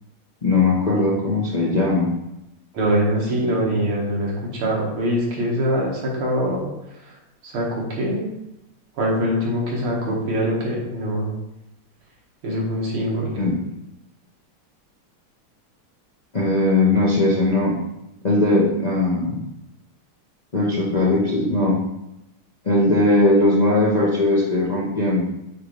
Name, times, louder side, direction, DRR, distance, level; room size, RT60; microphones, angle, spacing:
voice 1, 0.4-2.1 3.4-3.9 13.4-13.6 16.3-17.7 18.2-19.4 20.5-21.8 22.6-25.2, left 2 dB, 35° left, -5 dB, 0.6 m, -19 dB
voice 2, 2.7-6.7 7.5-8.3 9.0-11.3 12.4-13.4, equal, 75° right, -3 dB, 2.5 m, -23 dB
8.3 x 3.9 x 3.3 m, 0.88 s
omnidirectional pair, 2.4 m